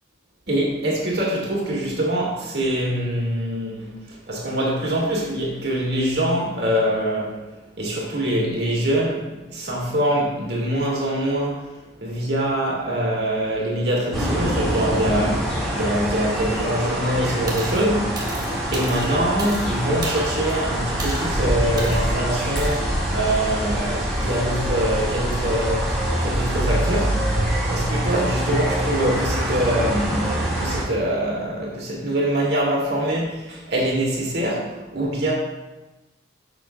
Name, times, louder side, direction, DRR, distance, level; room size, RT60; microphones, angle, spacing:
voice 1, 0.5-3.9 4.3-7.4 7.8-11.6 12.0-18.0 18.7-27.4 27.7-35.3, right 1 dB, 55° right, -3 dB, 2.3 m, -24 dB
sound 1, 14.1-30.8, equal, ahead, 2.2 m, -24 dB
sound 2, 17.5-17.8 18.2-19.7 20.0-20.5 21.0-21.3 21.8-22.0 22.6-22.8, right 2 dB, 20° right, 1.1 m, -34 dB
10.5 x 6.8 x 2.4 m, 1.1 s
head